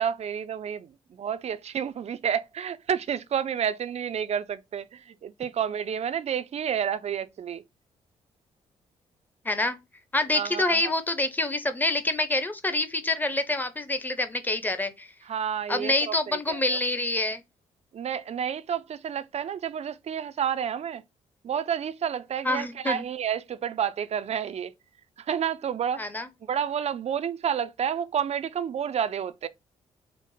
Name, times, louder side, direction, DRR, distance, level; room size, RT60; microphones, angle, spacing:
voice 1, 0.0-7.6 10.3-10.9 15.3-16.8 17.9-21.0 21.4-24.7 25.2-26.0 26.5-29.5, right 8 dB, 40° right, 0.4 m, -30 dB
voice 2, 9.4-9.8 10.1-15.1 15.7-17.4 22.4-23.0 26.0-26.3, left 2 dB, 10° left, 0.7 m, -26 dB
4.5 x 2.0 x 3.9 m
hypercardioid pair, 40°, 16 cm